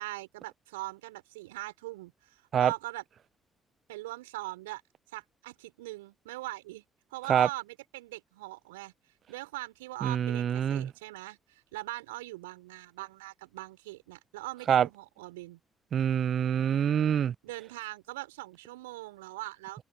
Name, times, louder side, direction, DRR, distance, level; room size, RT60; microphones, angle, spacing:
voice 1, 0.0-3.0 3.9-4.8 5.1-6.8 7.1-8.9 9.3-15.6 17.4-19.8, right 19 dB, 80° right, 5.6 m, -41 dB
voice 2, 10.0-10.9 14.7-14.9 15.9-17.3, right 9 dB, 55° right, 0.5 m, -25 dB
figure-of-eight pair, 45°, 0 cm